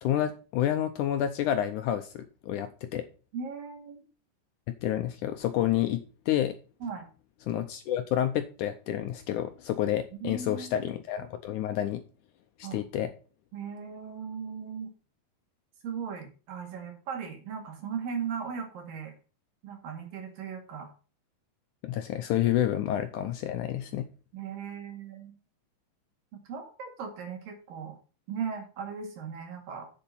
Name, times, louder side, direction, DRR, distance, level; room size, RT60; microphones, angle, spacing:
voice 1, 0.0-3.1 4.7-6.6 7.5-12.0 12.7-13.1 21.8-24.1, left 11 dB, 80° left, 8 dB, 1.9 m, -29 dB
voice 2, 3.3-4.1 6.8-7.1 10.1-10.9 12.6-12.8 13.5-14.9 15.8-19.1 19.6-20.9 24.3-25.4 26.3-28.0 28.3-29.9, right 6 dB, 70° right, 3 dB, 3.9 m, -38 dB
7.9 x 7.3 x 5.7 m, 0.36 s
omnidirectional pair, 4.2 m